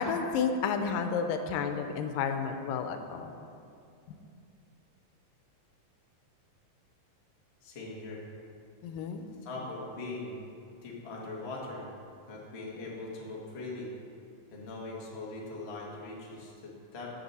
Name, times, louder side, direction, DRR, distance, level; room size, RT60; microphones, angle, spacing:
voice 1, 0.0-3.3 4.1-4.2 8.8-9.2, left 6 dB, 85° left, 7 dB, 2.4 m, -31 dB
voice 2, 7.6-8.3 9.4-10.4 10.8-11.9 12.3-13.9 14.5-17.1, left 2 dB, 35° left, -4 dB, 1.1 m, -41 dB
13.0 x 8.0 x 4.1 m, 2.5 s
omnidirectional pair, 3.8 m